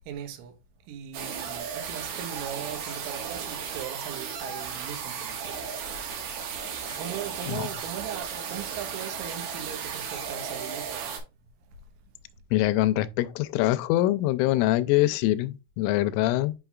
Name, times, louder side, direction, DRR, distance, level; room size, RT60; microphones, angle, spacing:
voice 1, 0.1-0.6 0.9-5.6 7.0-11.2, right 9 dB, 85° right, 3.6 m, -39 dB
sound 1, 1.1-11.2, right 7 dB, 65° right, 3.1 m, -35 dB
voice 2, 12.5-16.5, left 15 dB, 85° left, 3.0 m, -24 dB
7.7 x 6.0 x 2.3 m
omnidirectional pair, 5.6 m